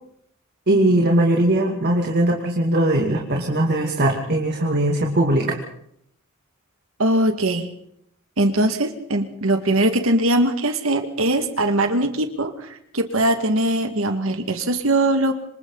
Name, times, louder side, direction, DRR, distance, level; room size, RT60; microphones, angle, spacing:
voice 1, 0.7-5.6, right 1 dB, 50° right, 1 dB, 2.7 m, -20 dB
voice 2, 7.0-7.7 8.4-15.3, right 1 dB, 70° right, 6 dB, 2.0 m, -21 dB
27.0 x 25.5 x 4.1 m, 0.71 s
head